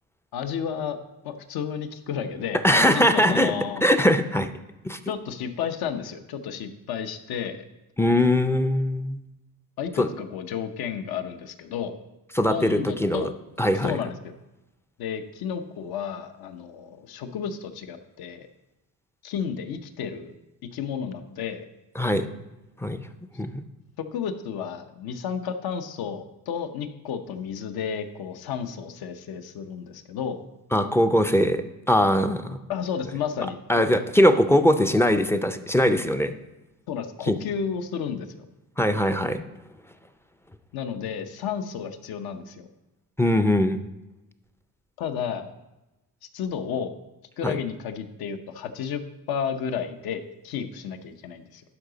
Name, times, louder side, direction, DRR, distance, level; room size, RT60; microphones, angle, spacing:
voice 1, 0.3-1.0 1.2-3.8 5.1-7.6 9.8-12.0 12.5-13.3 13.8-14.3 15.0-18.5 19.2-20.4 20.7-21.7 24.1-30.4 32.7-33.9 36.9-38.4 40.7-42.7 45.0-45.5 46.3-46.9 47.4-51.6, left 7 dB, 70° left, 9 dB, 0.8 m, -32 dB
voice 2, 2.6-3.5 3.8-4.5 4.8-5.0 8.0-9.2 10.0-10.1 12.3-13.3 13.6-14.0 22.0-22.3 22.8-23.1 23.4-23.6 30.7-32.6 33.7-36.3 37.3-37.4 38.8-39.4 43.2-43.8 47.4-47.5, left 1 dB, 5° left, 8 dB, 0.4 m, -21 dB
11.5 x 4.9 x 3.9 m, 1.0 s
cardioid pair, 95°, 39 cm